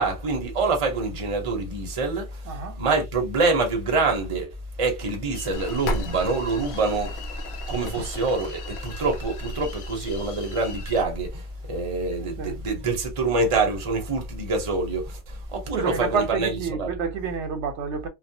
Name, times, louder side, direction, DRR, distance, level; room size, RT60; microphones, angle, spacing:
voice 1, 0.0-4.5 4.8-7.2 7.7-16.9, right 3 dB, 35° right, 0.7 m, -26 dB
voice 2, 2.5-2.8 8.0-8.1 12.4-12.6 15.7-18.1, right 5 dB, 85° right, 0.9 m, -29 dB
sound 1, 5.3-11.0, left 5 dB, 85° left, 1.0 m, -43 dB
sound 2, 5.5-15.6, equal, 70° left, 0.8 m, -37 dB
2.4 x 2.0 x 2.6 m
omnidirectional pair, 1.2 m